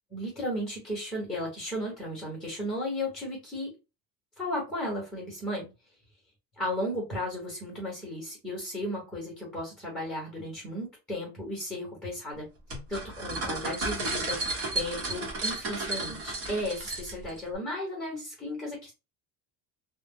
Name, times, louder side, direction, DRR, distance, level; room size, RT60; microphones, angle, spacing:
voice 1, 0.1-3.7 4.4-5.7 6.6-12.5 12.9-18.9, left 1 dB, 5° left, -3 dB, 1.0 m, -35 dB
sound 1, 12.7-17.4, right 2 dB, 40° right, 1.0 m, -33 dB
2.2 x 2.1 x 3.5 m, 0.28 s
cardioid pair, 175°, 37 cm